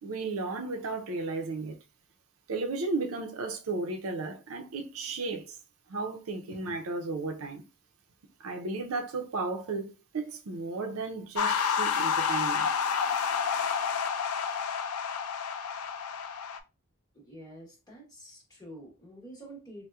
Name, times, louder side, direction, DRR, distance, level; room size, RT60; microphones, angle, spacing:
voice 1, 0.0-1.8 2.5-5.6 5.9-7.6 8.4-12.7, right 3 dB, 80° right, 0.6 m, -34 dB
sound 1, 11.4-16.6, left 6 dB, 90° left, 0.4 m, -29 dB
voice 2, 17.1-19.9, right 1 dB, 20° left, 1.0 m, -48 dB
4.1 x 2.1 x 2.3 m
head